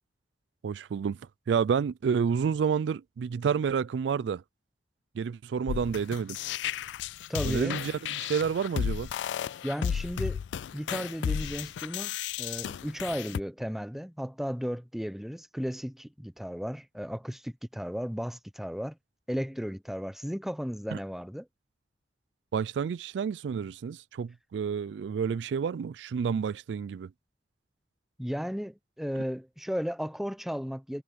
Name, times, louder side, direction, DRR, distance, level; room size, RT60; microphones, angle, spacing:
voice 1, 0.6-1.2 1.5-4.4 5.1-6.4 7.4-9.1 20.9-21.0 22.5-27.1, right 6 dB, 80° right, 0.3 m, -29 dB
sound 1, 5.7-13.4, left 8 dB, 80° left, 0.3 m, -33 dB
voice 2, 7.3-7.8 9.6-10.4 10.7-19.0 19.3-21.5 28.2-31.0, equal, ahead, 0.8 m, -34 dB
head